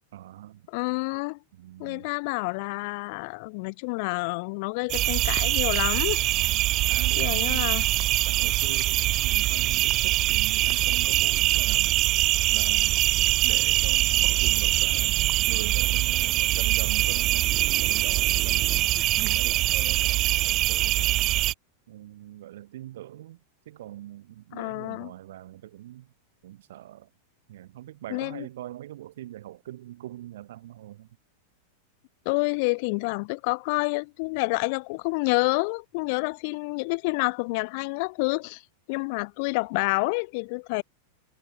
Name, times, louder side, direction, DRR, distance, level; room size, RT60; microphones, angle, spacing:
voice 1, 0.1-0.7 1.5-2.1 6.4-7.7 8.2-12.0 12.5-18.8 19.2-21.4 21.9-26.1 26.4-27.1 27.5-31.2, right 13 dB, 55° right, 1.4 m, -42 dB
voice 2, 0.7-1.4 1.8-6.2 7.2-7.8 24.5-25.1 28.1-28.5 32.3-38.6 38.9-40.8, left 30 dB, 45° left, 0.5 m, -28 dB
sound 1, 4.9-21.5, right 17 dB, 35° right, 0.4 m, -23 dB
figure-of-eight pair, 90°, 0 cm